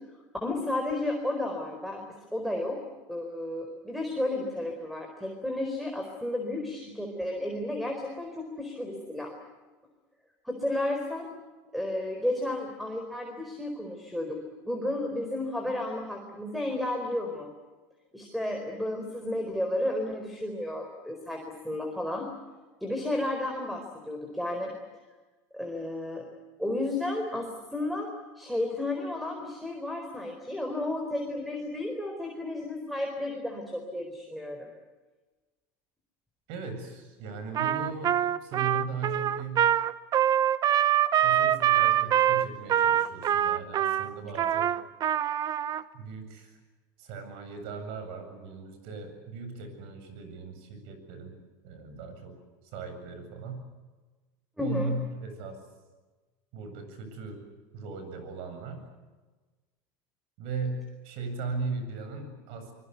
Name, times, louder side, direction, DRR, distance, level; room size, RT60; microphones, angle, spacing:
voice 1, 0.4-2.0 2.3-2.8 3.1-9.3 10.4-11.4 11.7-14.4 14.6-17.5 18.1-22.3 22.8-24.7 25.5-26.2 26.6-28.1 28.3-34.7 54.6-54.9, left 1 dB, ahead, 3 dB, 4.5 m, -32 dB
voice 2, 36.5-39.7 41.1-44.7 45.9-46.6 47.0-51.4 51.6-53.6 54.6-55.7 56.5-57.5 57.7-58.9 60.4-62.7, right 4 dB, 65° right, 8 dB, 7.8 m, -38 dB
Trumpet, 37.5-45.8, right 10 dB, 40° right, 1.0 m, -24 dB
24.5 x 23.0 x 8.2 m, 1.3 s
supercardioid pair, 120°, 10 cm